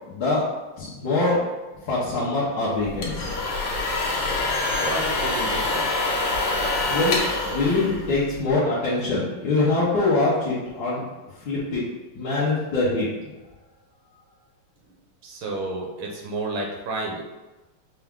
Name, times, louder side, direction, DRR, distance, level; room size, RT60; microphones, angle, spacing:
voice 1, 0.1-0.4 0.8-1.5 1.9-3.3 6.9-7.2 7.4-11.0 11.5-11.8 12.2-13.1, left 2 dB, 55° left, -9 dB, 1.2 m, -23 dB
sound 1, 2.8-8.5, left 2 dB, 80° left, 1.8 m, -26 dB
voice 2, 4.7-5.9 15.2-17.2, right 2 dB, 70° right, 0 dB, 1.4 m, -31 dB
5.7 x 2.5 x 3.6 m, 1.1 s
omnidirectional pair, 2.4 m